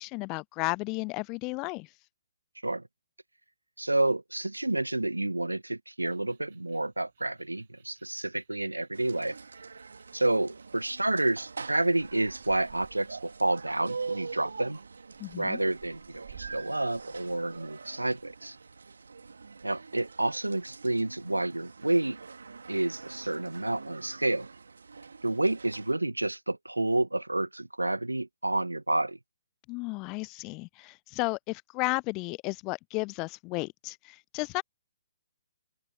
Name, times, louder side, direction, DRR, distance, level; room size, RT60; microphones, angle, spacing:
voice 1, 0.0-1.9 15.2-15.6 29.7-34.6, left 26 dB, 25° left, 0.3 m, -33 dB
voice 2, 3.8-9.4 10.1-14.8 15.4-18.6 19.6-22.2 22.7-24.5 25.2-29.2, right 2 dB, 85° right, 1.1 m, -29 dB
sound 1, 6.0-18.7, right 9 dB, 50° right, 6.5 m, -57 dB
sound 2, 8.9-25.9, right 4 dB, 70° right, 2.5 m, -44 dB
open air
figure-of-eight pair, 130°, 0 cm